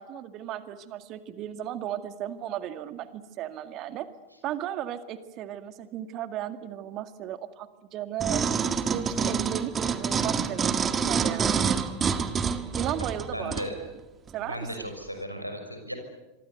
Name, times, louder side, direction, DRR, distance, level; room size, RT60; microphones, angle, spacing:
voice 1, 0.0-4.1 4.4-11.8 12.7-13.9 14.3-14.9, right 11 dB, 35° right, 10 dB, 2.0 m, -35 dB
sound 1, 8.2-13.7 14.3-14.4, right 6 dB, 20° right, 1.9 m, -27 dB
voice 2, 13.3-13.8 14.4-15.9, equal, 90° left, 5 dB, 6.0 m, -35 dB
26.5 x 24.0 x 8.2 m, 1.1 s
figure-of-eight pair, 90°, 0 cm